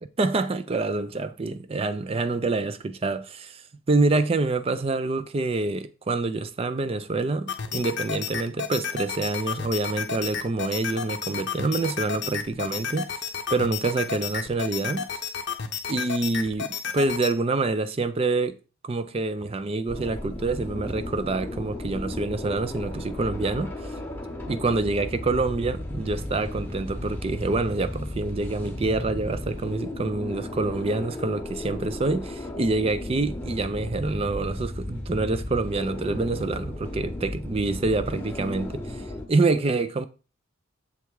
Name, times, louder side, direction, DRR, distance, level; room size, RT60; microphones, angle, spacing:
voice 1, 0.2-13.2 13.5-15.2 15.9-18.6 18.8-23.9 24.5-40.1, right 3 dB, 25° right, 0.4 m, -26 dB
sound 1, 7.5-17.3, left 6 dB, 55° left, 0.6 m, -32 dB
sound 2, 19.9-39.3, left 1 dB, 10° left, 0.9 m, -34 dB
7.1 x 3.4 x 4.6 m
head